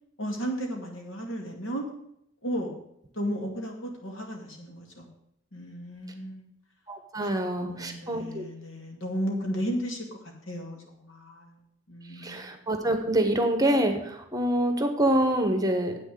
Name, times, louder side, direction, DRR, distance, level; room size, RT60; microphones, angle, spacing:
voice 1, 0.2-1.8 2.4-2.7 3.1-5.1 5.5-6.5 7.2-7.3 7.5-10.1 10.5-11.5 11.9-12.5, equal, 80° left, 1 dB, 2.4 m, -34 dB
voice 2, 6.9-8.4 12.2-16.0, right 1 dB, 20° right, 6 dB, 1.1 m, -26 dB
8.3 x 6.4 x 7.7 m, 0.73 s
head